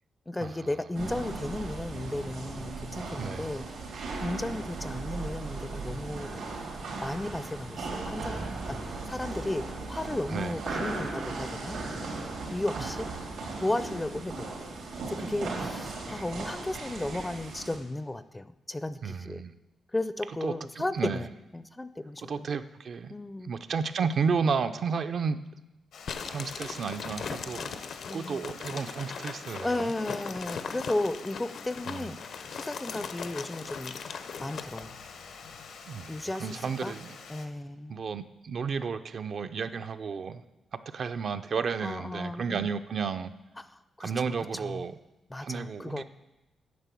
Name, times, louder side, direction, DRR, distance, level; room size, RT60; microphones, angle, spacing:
voice 1, 0.3-3.7 4.2-6.4 7.0-11.8 12.5-13.1 13.6-14.5 14.9-19.4 19.9-21.3 21.5-22.5 23.1-23.5 28.1-28.5 29.6-32.2 32.5-33.9 34.4-35.0 36.1-36.9 37.3-38.0 41.8-42.7 43.7-44.8 45.3-46.0, left 2 dB, 15° left, 13 dB, 0.4 m, -34 dB
sound 1, 0.9-17.8, right 3 dB, 90° right, 3.0 m, -37 dB
voice 2, 3.2-3.5 10.3-10.5 12.7-12.9 15.5-15.7 19.0-19.6 20.4-21.3 22.2-23.1 23.4-25.4 26.3-27.7 28.1-29.9 31.9-32.1 35.9-37.2 37.9-40.4 40.9-43.3 44.0-44.9 45.4-46.0, right 5 dB, 55° right, 9 dB, 0.5 m, -32 dB
Water, 25.9-37.5, left 5 dB, 85° left, 1.2 m, -47 dB
sound 2, 26.1-34.9, left 6 dB, 65° left, 0.7 m, -39 dB
9.5 x 6.7 x 8.3 m, 1.0 s
cardioid pair, 110°, 0 cm